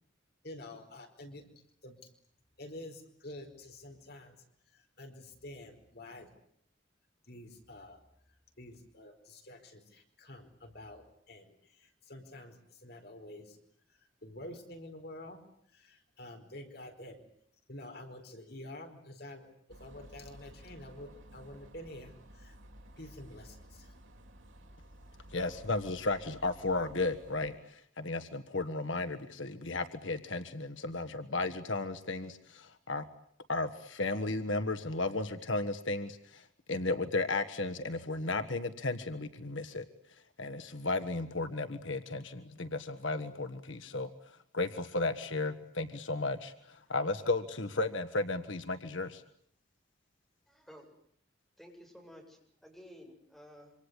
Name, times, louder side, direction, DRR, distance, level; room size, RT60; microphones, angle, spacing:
voice 1, 0.4-1.4 1.8-2.1 2.6-4.3 4.7-6.3 7.2-8.0 8.6-13.6 13.9-15.4 15.7-17.2 17.7-22.6 23.0-23.9, left 1 dB, 50° left, 5 dB, 4.7 m, -48 dB
sound 1, 19.7-27.6, equal, 85° right, 4.5 m, -54 dB
voice 2, 25.3-27.5 28.0-33.0 33.5-36.4 36.7-39.8 40.4-44.1 44.5-46.5 46.9-49.2, left 2 dB, 75° left, 9 dB, 1.6 m, -34 dB
voice 3, 50.5-50.9 51.6-53.7, equal, ahead, 0 dB, 7.8 m, -53 dB
27.0 x 25.5 x 8.2 m, 0.65 s
head